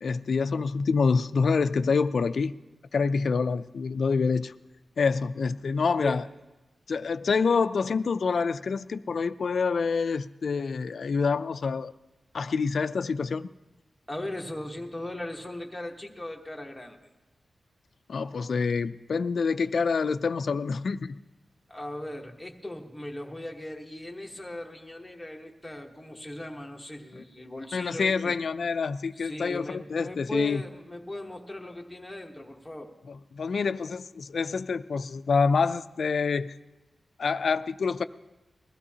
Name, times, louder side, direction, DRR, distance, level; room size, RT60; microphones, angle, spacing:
voice 1, 0.0-2.5 2.9-4.5 5.0-6.2 6.9-11.9 12.3-13.5 18.1-21.2 27.2-27.3 27.7-30.6 33.1-36.6 37.2-38.0, left 5 dB, 65° left, 13 dB, 0.4 m, -27 dB
voice 2, 14.1-17.0 21.7-28.4 29.2-32.9, left 1 dB, 5° left, 1 dB, 1.1 m, -38 dB
21.0 x 15.0 x 2.8 m, 1.1 s
wide cardioid pair, 130°, 0 cm